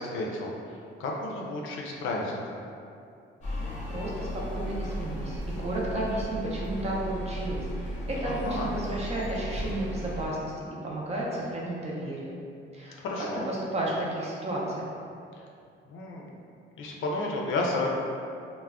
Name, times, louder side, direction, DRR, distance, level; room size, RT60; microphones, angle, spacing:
voice 1, 0.0-2.6 8.2-8.7 13.0-13.4 15.9-16.3 16.8-17.9, left 2 dB, 75° left, -1 dB, 0.4 m, -32 dB
sound 1, 3.4-10.3, equal, 35° left, 0.6 m, -35 dB
voice 2, 3.9-10.5 10.8-12.4 12.7-14.9, right 1 dB, 30° right, -4 dB, 0.5 m, -32 dB
2.2 x 2.0 x 3.5 m, 2.5 s
cardioid pair, 145°, 20 cm